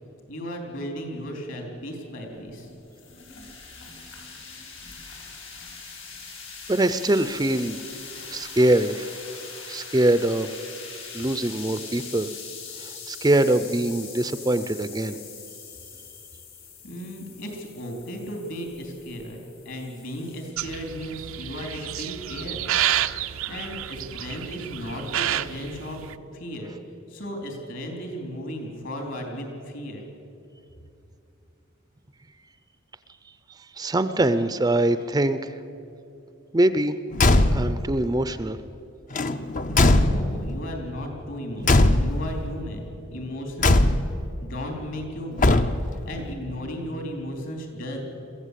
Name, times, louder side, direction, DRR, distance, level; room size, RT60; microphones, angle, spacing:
voice 1, 0.3-2.7 16.8-22.7 23.5-26.0 26.3-26.7 27.1-30.0 39.7-44.0 44.4-45.5 46.0-48.0, equal, 60° left, 3 dB, 3.8 m, -35 dB
sound 1, 2.3-20.5, left 5 dB, 85° left, 5.6 m, -42 dB
voice 2, 6.7-7.8 8.3-9.1 9.7-10.6 11.1-12.3 12.8-15.2 33.5-35.6 36.5-37.0 37.5-38.6, right 1 dB, 20° right, 12 dB, 0.5 m, -23 dB
sound 2, 20.6-26.2, right 11 dB, 75° right, 0.6 m, -29 dB
Car / Truck / Slam, 37.1-37.9 39.1-40.6 41.6-42.4 43.6-44.3 45.4-46.1, left 2 dB, 40° left, 0.7 m, -20 dB
22.5 x 15.0 x 8.3 m, 2.7 s
head